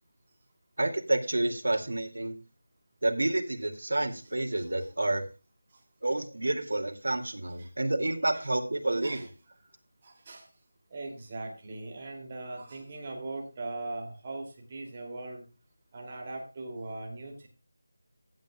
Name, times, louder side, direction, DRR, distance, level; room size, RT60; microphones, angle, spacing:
voice 1, 0.8-2.3 3.0-5.2 6.0-9.3, right 2 dB, 75° right, 4 dB, 2.4 m, -29 dB
voice 2, 4.6-4.9 7.6-7.7 8.3-8.5 9.0-9.3 10.0-10.4 10.9-15.4 15.9-17.5, right 2 dB, 20° right, 0 dB, 2.7 m, -40 dB
16.0 x 9.5 x 2.3 m, 0.31 s
figure-of-eight pair, 175°, 0 cm